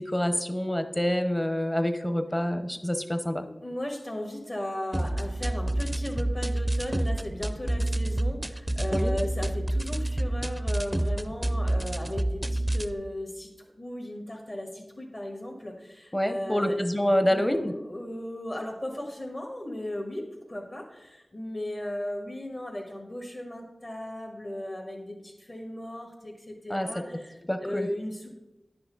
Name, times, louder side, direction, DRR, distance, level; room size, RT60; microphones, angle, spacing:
voice 1, 0.0-3.5 8.9-9.1 16.1-17.7 26.7-26.9 27.5-27.9, equal, 20° left, 8 dB, 0.8 m, -27 dB
voice 2, 3.6-13.5 13.8-16.8 17.2-27.3 27.6-28.4, left 1 dB, 45° left, 1 dB, 1.6 m, -36 dB
sound 1, 4.9-12.9, right 1 dB, 15° right, 0.4 m, -28 dB
10.0 x 5.7 x 3.9 m, 0.99 s
wide cardioid pair, 50°, 0 cm